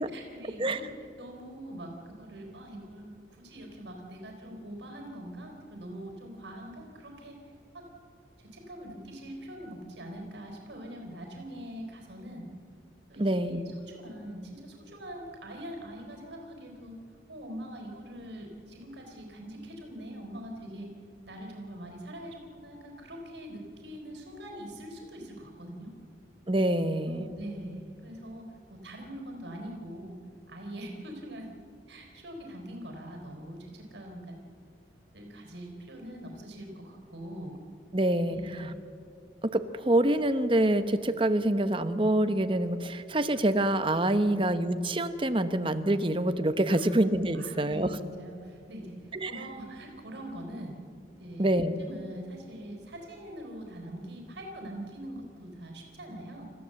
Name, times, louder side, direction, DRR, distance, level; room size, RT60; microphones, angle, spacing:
voice 1, 0.1-3.0 3.4-7.5 7.7-7.9 8.4-12.5 13.1-17.0 17.3-20.9 21.2-25.9 27.1-30.2 30.5-31.5 31.9-34.4 35.1-37.6 38.3-38.7 44.2-44.4 46.7-46.9 47.3-48.9 49.2-50.8 51.2-56.5, right 1 dB, 70° right, 3 dB, 3.8 m, -43 dB
voice 2, 13.2-13.6 26.5-27.3 37.9-38.4 39.5-47.9 49.1-49.3 51.4-51.7, right 1 dB, 30° right, 10 dB, 0.9 m, -26 dB
29.5 x 14.5 x 7.8 m, 2.4 s
head